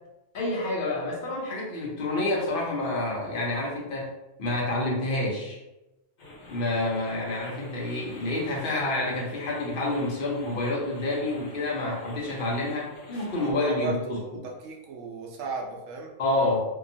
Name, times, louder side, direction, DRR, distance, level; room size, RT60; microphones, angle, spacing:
voice 1, 0.3-4.1 4.4-5.6 6.5-14.2 16.2-16.6, left 2 dB, 50° left, -3 dB, 0.8 m, -28 dB
sound 1, 6.2-13.5, left 2 dB, 70° left, 1.2 m, -47 dB
voice 2, 13.3-16.1, right 3 dB, 85° right, 0 dB, 1.0 m, -35 dB
2.8 x 2.3 x 2.6 m, 0.96 s
omnidirectional pair, 1.3 m